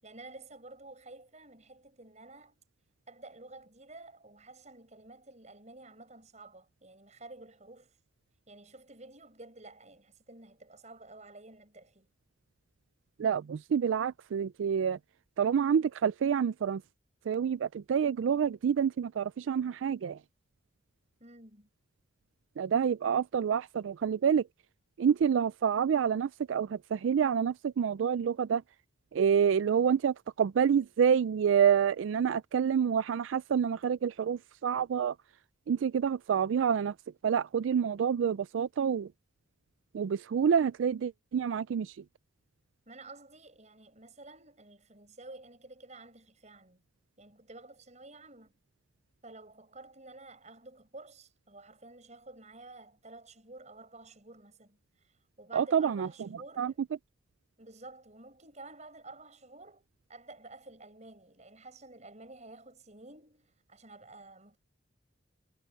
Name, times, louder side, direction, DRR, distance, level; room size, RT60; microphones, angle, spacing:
voice 1, 0.0-2.6 3.1-7.9 8.5-12.1 21.2-21.7 42.9-46.8 47.2-48.6 49.2-54.8 55.4-56.8 57.6-64.6, right 2 dB, 35° right, 7.6 m, -51 dB
voice 2, 13.2-15.0 15.4-16.8 17.3-20.2 22.6-24.5 25.0-28.6 29.1-35.2 35.7-36.9 37.2-39.1 39.9-42.0 55.5-56.7, right 7 dB, 85° right, 0.3 m, -28 dB
head